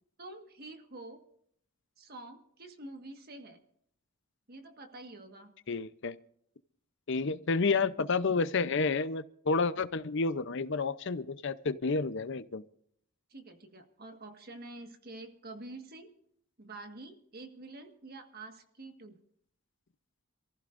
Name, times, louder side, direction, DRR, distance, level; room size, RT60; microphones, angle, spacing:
voice 1, 0.2-1.2 2.0-3.6 4.5-5.5 13.3-16.1 16.6-19.2, right 2 dB, 50° right, 5 dB, 1.6 m, -47 dB
voice 2, 5.7-6.2 7.1-12.6, left 4 dB, 60° left, 14 dB, 0.7 m, -30 dB
27.0 x 15.0 x 2.6 m, 0.68 s
head